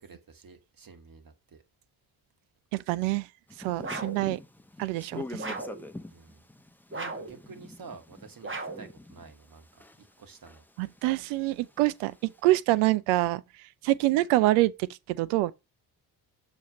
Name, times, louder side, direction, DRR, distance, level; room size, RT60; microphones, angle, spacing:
voice 1, 0.0-1.6 4.8-4.9 6.1-6.4 6.9-8.5 8.8-10.6, right 5 dB, 45° right, 1.9 m, -49 dB
voice 2, 2.7-3.2 3.6-4.4 4.8-5.5 10.8-13.4 13.8-15.5, right 17 dB, 80° right, 0.6 m, -26 dB
sound 1, 3.5-10.2 10.5-12.4, left 2 dB, 5° left, 0.9 m, -45 dB
sound 2, 3.8-4.3 5.4-5.8 6.9-7.4 8.4-8.9, right 3 dB, 25° right, 1.7 m, -36 dB
6.9 x 3.5 x 6.3 m
hypercardioid pair, 50°, 48 cm